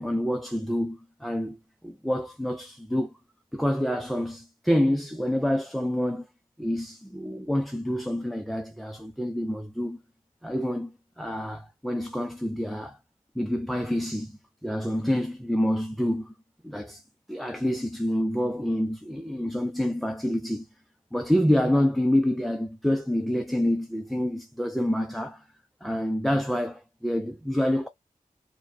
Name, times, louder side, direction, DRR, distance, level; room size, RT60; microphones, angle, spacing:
voice 1, 0.0-1.6 1.8-3.1 3.5-6.3 6.6-10.0 10.4-13.0 13.4-16.3 16.6-17.0 17.3-20.7 21.1-25.4 25.8-27.9, equal, ahead, 0.5 m, -27 dB
4.3 x 2.2 x 2.6 m
wide cardioid pair, 65°, 15 cm